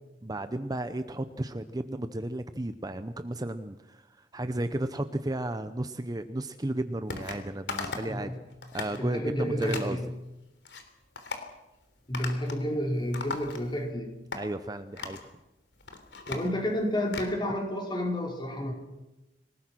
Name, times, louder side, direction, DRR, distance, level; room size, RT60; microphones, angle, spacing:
voice 1, 0.2-8.4 8.7-10.0 14.4-15.2, right 1 dB, 20° right, 10 dB, 0.8 m, -33 dB
sound 1, 7.1-7.4 7.7-8.2 8.5-9.0 9.6-9.9 10.4-10.8 11.2-11.5 12.1-12.7 12.9-13.9 14.3-14.4 15.0-15.3 15.7-17.3, left 4 dB, 85° left, 3.4 m, -38 dB
voice 2, 8.9-10.1 12.1-14.1 16.3-18.7, equal, 25° left, 1 dB, 5.0 m, -30 dB
28.0 x 19.0 x 6.2 m, 1.0 s
head